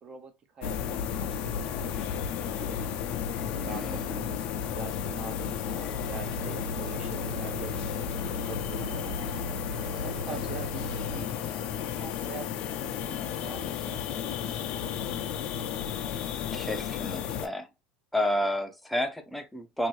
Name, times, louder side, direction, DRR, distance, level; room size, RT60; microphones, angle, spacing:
voice 1, 0.0-2.8 3.5-4.4 4.7-7.7 8.4-9.5 9.9-12.6 12.8-15.0, right 5 dB, 40° right, 0.9 m, -44 dB
sound 1, 0.6-17.5, left 9 dB, 55° left, 0.5 m, -33 dB
voice 2, 3.7-4.1 10.3-10.6 16.5-17.7 18.1-19.9, left 1 dB, 5° left, 0.7 m, -31 dB
sound 2, 5.9-11.2, right 1 dB, 85° right, 1.2 m, -39 dB
2.7 x 2.6 x 3.0 m
supercardioid pair, 110°, 2 cm